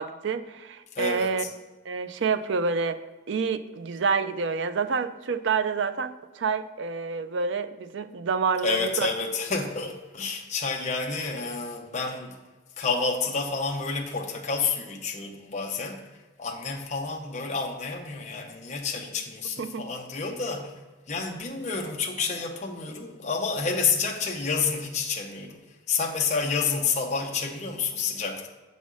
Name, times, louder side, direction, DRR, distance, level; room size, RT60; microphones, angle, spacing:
voice 1, 0.0-1.4 1.9-3.0 3.3-9.1 19.6-19.8, right 5 dB, 65° right, 11 dB, 0.4 m, -28 dB
voice 2, 1.0-1.5 8.6-12.3 12.8-16.0 16.4-20.7 21.1-25.6 25.9-28.5, left 4 dB, 35° left, 1 dB, 0.7 m, -29 dB
8.0 x 4.2 x 6.1 m, 1.2 s
head